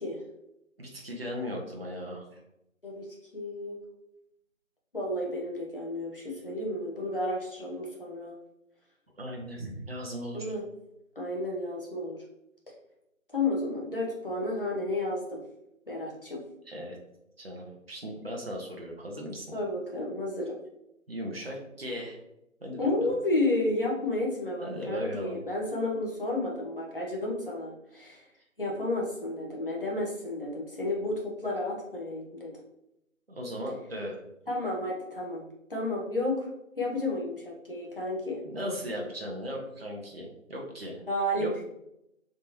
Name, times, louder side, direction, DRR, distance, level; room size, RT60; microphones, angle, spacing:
voice 1, 0.8-2.4 9.2-10.5 16.7-17.0 17.4-19.5 21.1-22.2 22.6-23.1 24.6-25.4 33.3-34.2 38.4-41.0 41.4-41.6, equal, 45° right, -1 dB, 0.7 m, -37 dB
voice 2, 3.3-3.8 4.9-8.3 10.3-10.6 11.2-12.2 13.3-15.4 15.9-16.4 19.5-20.6 22.8-28.2 28.6-32.5 34.5-36.5 36.8-38.4 41.1-41.5, left 2 dB, 45° left, -3 dB, 0.9 m, -31 dB
3.4 x 2.7 x 2.8 m, 0.84 s
figure-of-eight pair, 170°, 41 cm